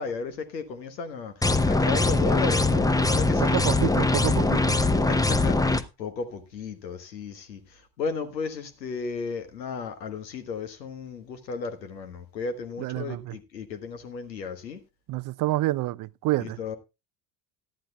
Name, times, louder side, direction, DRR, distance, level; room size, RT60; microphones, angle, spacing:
voice 1, 0.0-3.6 5.1-14.8 16.4-16.8, left 5 dB, 85° left, 1.4 m, -34 dB
sound 1, 1.4-5.8, left 2 dB, 5° left, 0.8 m, -22 dB
voice 2, 3.4-4.8 12.8-13.4 15.1-16.6, right 17 dB, 40° right, 0.5 m, -28 dB
17.5 x 11.5 x 2.3 m
figure-of-eight pair, 55°, 49 cm